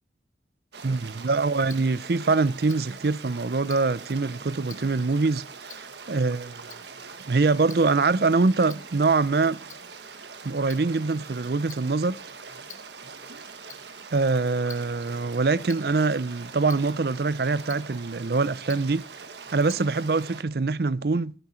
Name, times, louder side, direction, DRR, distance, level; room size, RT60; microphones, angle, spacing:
sound 1, 0.7-20.4, right 5 dB, 75° right, 1.5 m, -43 dB
voice 1, 0.8-6.7 7.3-9.6 10.4-12.2 14.1-19.0 19.5-21.3, right 3 dB, 60° right, 0.6 m, -24 dB
Tick-tock, 1.2-20.2, left 8 dB, 45° left, 1.8 m, -53 dB
16.0 x 13.0 x 4.3 m
head